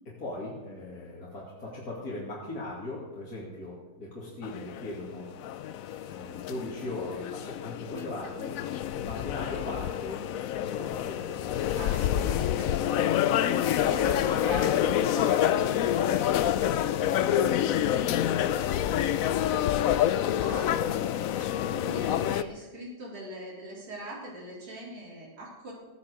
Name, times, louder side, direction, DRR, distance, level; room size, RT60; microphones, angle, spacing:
voice 1, 0.2-5.3 6.0-8.5 8.9-10.2 10.6-11.4 18.0-18.4, left 2 dB, 55° left, -6 dB, 3.1 m, -39 dB
sound 1, 4.4-22.4, left 11 dB, 70° left, 0.8 m, -27 dB
voice 2, 11.7-13.1 13.7-16.5 16.8-17.7 20.4-20.8 21.4-25.7, right 1 dB, 60° right, -6 dB, 4.4 m, -41 dB
14.0 x 10.5 x 6.5 m, 1.2 s
omnidirectional pair, 1.9 m